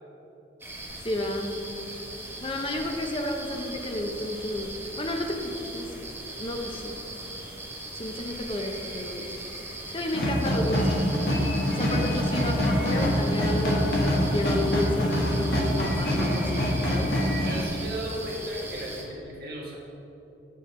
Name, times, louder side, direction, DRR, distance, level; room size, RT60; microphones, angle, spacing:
sound 1, 0.6-19.0, right 1 dB, 15° right, 0.9 m, -39 dB
voice 1, 1.0-1.6 2.4-6.1 6.4-7.0 7.9-9.3 9.7-11.0 11.7-17.2, left 1 dB, 30° left, 3 dB, 0.5 m, -32 dB
sound 2, 10.1-17.7, equal, 55° left, 1.3 m, -25 dB
voice 2, 17.4-19.8, right 1 dB, 55° right, -3 dB, 1.5 m, -36 dB
9.2 x 3.8 x 5.6 m, 2.9 s
head